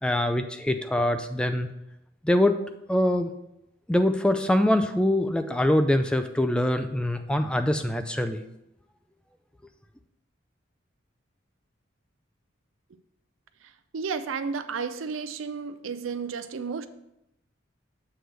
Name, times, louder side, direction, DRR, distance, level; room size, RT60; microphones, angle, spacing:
voice 1, 0.0-1.7 2.2-2.6 2.9-3.3 3.9-8.4, left 1 dB, 5° left, 8 dB, 0.3 m, -24 dB
voice 2, 13.9-16.9, right 5 dB, 80° right, 11 dB, 0.5 m, -32 dB
7.7 x 3.4 x 6.4 m, 0.84 s
head